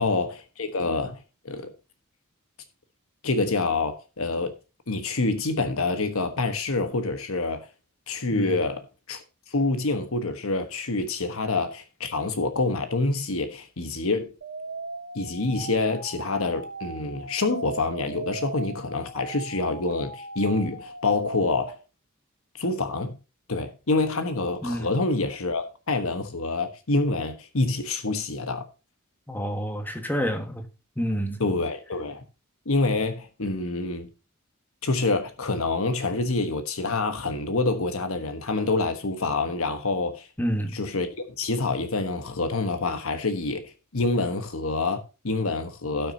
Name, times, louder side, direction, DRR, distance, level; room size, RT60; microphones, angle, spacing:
voice 1, 0.0-1.7 3.2-4.5 4.9-7.7 8.1-14.3 15.1-21.8 22.6-23.2 23.5-28.7 31.4-32.2 32.6-34.1 34.8-40.3 40.7-46.1, left 3 dB, 70° left, 1.3 m, -27 dB
sound 1, 14.4-21.8, right 3 dB, 70° right, 1.8 m, -38 dB
voice 2, 29.3-30.7 31.0-31.4 40.4-40.8, equal, 10° left, 1.4 m, -28 dB
17.0 x 6.2 x 2.8 m
head